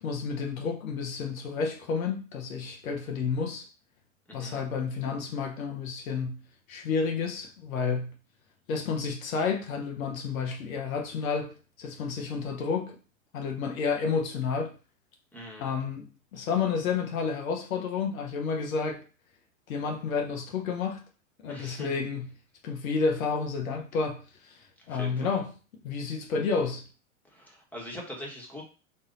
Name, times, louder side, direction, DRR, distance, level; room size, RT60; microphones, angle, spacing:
voice 1, 0.0-3.6 4.3-6.4 6.7-8.1 8.7-13.0 13.3-14.7 15.6-19.0 19.7-21.0 21.4-22.3 22.6-25.5 25.8-26.9, left 5 dB, 75° left, 1.0 m, -30 dB
voice 2, 4.3-4.6 15.3-15.7 21.5-21.9 24.9-25.3 27.3-28.6, left 1 dB, 5° left, 1.2 m, -42 dB
3.9 x 2.6 x 3.8 m
hypercardioid pair, 110°, 41 cm